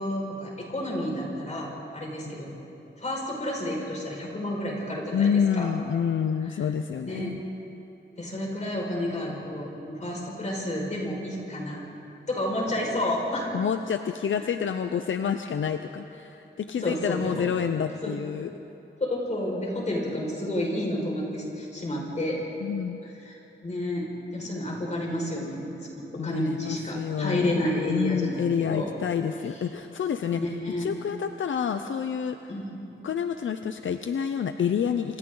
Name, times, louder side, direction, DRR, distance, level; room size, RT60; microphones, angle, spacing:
voice 1, 0.0-2.5 3.0-5.7 7.0-7.4 8.2-11.8 12.3-13.5 14.4-14.5 16.8-17.5 18.0-18.1 19.0-22.4 23.0-28.9 30.4-30.9 32.5-32.8, left 1 dB, 35° left, -2 dB, 5.2 m, -30 dB
voice 2, 5.1-7.4 13.5-18.5 22.6-23.0 26.2-30.4 30.8-32.4 33.0-35.2, left 7 dB, 75° left, 8 dB, 0.7 m, -28 dB
27.5 x 27.0 x 3.9 m, 2.9 s
wide cardioid pair, 140°, 20 cm